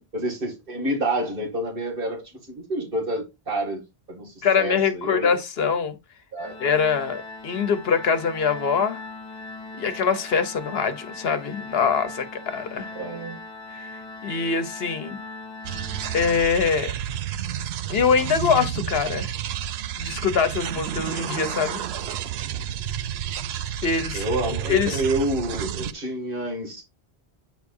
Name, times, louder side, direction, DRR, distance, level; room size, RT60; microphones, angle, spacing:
voice 1, 0.1-2.2 2.5-5.3 6.3-6.6 12.9-13.4 24.1-26.8, right 1 dB, 60° right, 2.4 m, -28 dB
voice 2, 4.4-5.9 6.6-9.0 9.8-12.9 13.7-15.2 16.1-16.9 17.9-19.3 20.0-21.8 23.8-24.2 24.7-25.0, left 6 dB, 75° left, 1.2 m, -24 dB
Organ, 6.4-17.1, left 2 dB, 30° left, 1.9 m, -40 dB
sound 1, 15.6-25.9, right 10 dB, 85° right, 0.8 m, -30 dB
8.8 x 4.7 x 2.6 m
omnidirectional pair, 1.0 m